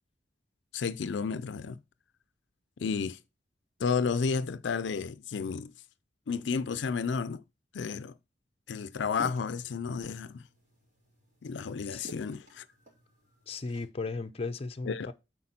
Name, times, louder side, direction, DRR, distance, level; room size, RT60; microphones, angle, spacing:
voice 1, 0.7-1.8 2.8-3.2 3.8-5.7 6.3-7.4 7.7-8.1 8.7-10.4 11.4-12.6 14.9-15.1, left 5 dB, 75° left, 0.5 m, -32 dB
sound 1, 8.7-13.8, left 1 dB, 45° right, 3.9 m, -52 dB
voice 2, 13.5-15.1, left 3 dB, 35° left, 0.6 m, -36 dB
8.6 x 4.4 x 4.2 m
head